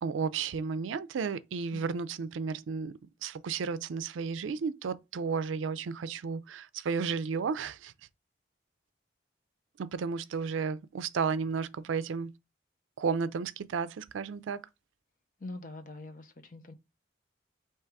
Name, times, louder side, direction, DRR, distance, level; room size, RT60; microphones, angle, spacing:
voice 1, 0.0-7.9 9.8-12.3 13.0-14.6, right 5 dB, 85° right, 0.4 m, -33 dB
voice 2, 15.4-16.7, left 2 dB, 45° left, 0.7 m, -44 dB
3.5 x 2.9 x 4.6 m
head